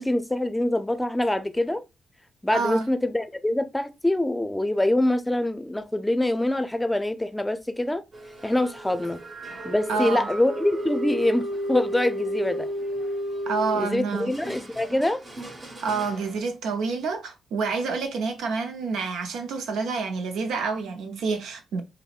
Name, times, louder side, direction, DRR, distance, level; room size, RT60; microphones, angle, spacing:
voice 1, 0.0-1.8 2.4-8.0 8.4-9.2 9.6-12.7 13.7-15.2, left 1 dB, 10° left, 0.6 m, -25 dB
voice 2, 2.5-2.9 9.9-10.3 13.5-14.3 15.8-21.8, right 4 dB, 80° right, 0.5 m, -28 dB
sound 1, 8.1-16.4, equal, 50° right, 1.4 m, -33 dB
5.6 x 2.1 x 2.4 m
supercardioid pair, 50°, 0 cm